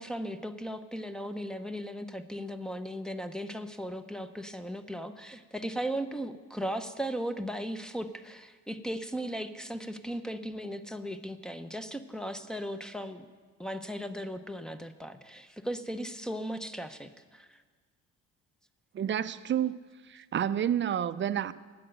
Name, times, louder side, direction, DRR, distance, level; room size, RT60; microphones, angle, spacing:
voice 1, 0.0-13.3 13.6-17.6, equal, ahead, 0.7 m, -37 dB
voice 2, 18.9-19.8 20.1-21.5, right 10 dB, 40° right, 0.5 m, -29 dB
9.9 x 7.6 x 9.0 m
cardioid pair, 90°, 30 cm